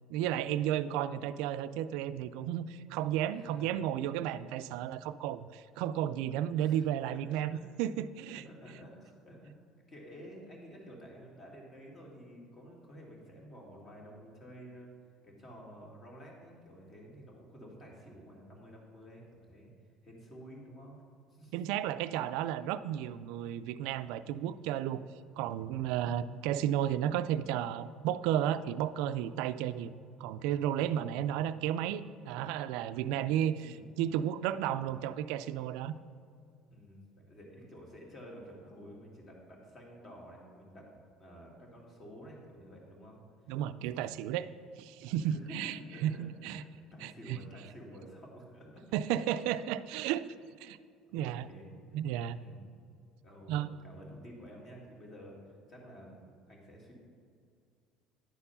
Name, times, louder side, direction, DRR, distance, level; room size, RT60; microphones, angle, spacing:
voice 1, 0.1-8.4 21.5-25.0 25.4-29.9 30.2-35.9 43.5-44.5 44.8-46.6 47.0-47.4 48.9-50.4 50.6-50.8 51.1-51.5 51.9-52.4 53.5-53.7, right 11 dB, 80° right, 13 dB, 0.3 m, -33 dB
voice 2, 3.3-3.7 6.5-6.9 7.3-7.8 8.4-9.5 9.9-14.9 15.2-19.7 20.0-21.0 21.3-21.6 30.8-31.2 33.5-33.8 36.7-40.9 41.2-43.2 44.0-44.1 45.2-49.0 51.1-52.0 52.3-52.7 53.2-56.9, equal, 35° left, -1 dB, 2.0 m, -51 dB
10.5 x 4.5 x 5.6 m, 2.3 s
cardioid pair, 125°, 0 cm